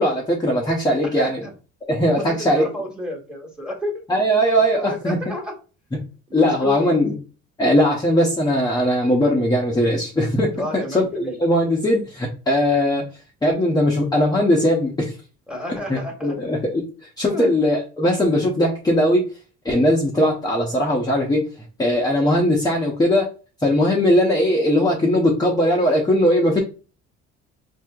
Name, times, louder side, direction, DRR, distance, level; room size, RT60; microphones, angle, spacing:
voice 1, 0.0-1.4 1.9-2.7 4.1-5.2 6.3-7.1 7.6-13.0 13.4-15.2 15.9-16.8 17.2-19.3 19.6-21.4 21.8-23.3 23.6-26.6, equal, 15° left, -1 dB, 0.7 m, -19 dB
voice 2, 1.2-1.5 2.1-4.2 4.7-5.5 6.3-7.0 10.5-11.4 15.5-16.3 17.3-17.6, left 1 dB, 5° right, 1 dB, 1.3 m, -31 dB
4.2 x 2.7 x 2.3 m, 0.34 s
cardioid pair, 110°, 29 cm